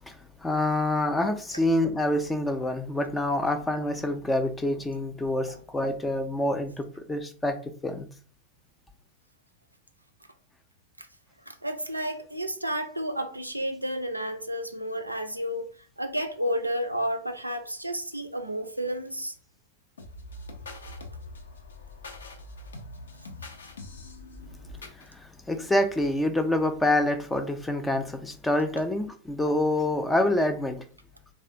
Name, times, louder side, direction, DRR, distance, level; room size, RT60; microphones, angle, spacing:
voice 1, 0.1-7.6 7.8-8.1 25.0-30.8, left 1 dB, 10° left, 0.4 m, -27 dB
voice 2, 11.5-15.7 16.0-19.3, equal, 85° right, 0.3 m, -31 dB
sound 1, 20.0-25.1, left 2 dB, 70° left, 0.5 m, -43 dB
3.2 x 2.3 x 2.6 m
figure-of-eight pair, 90°, 0 cm